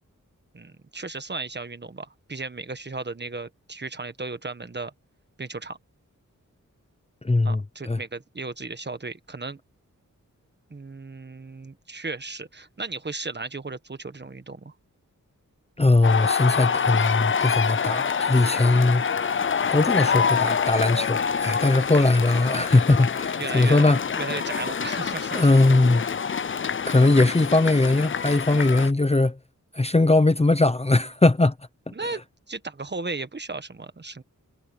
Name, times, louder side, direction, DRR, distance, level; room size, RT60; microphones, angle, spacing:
voice 1, 0.5-4.9 5.4-5.8 7.4-9.6 10.7-14.7 23.4-23.9 24.2-25.6 31.9-32.2 32.5-34.2, right 3 dB, 35° right, 1.4 m, -35 dB
voice 2, 7.2-8.0 15.8-19.0 19.7-24.0 25.3-26.0 26.8-29.4 29.7-31.5 32.0-32.2, left 2 dB, 20° left, 0.9 m, -20 dB
sound 1, 16.0-28.9, left 6 dB, 40° left, 0.5 m, -26 dB
wide cardioid pair, 90°, 31 cm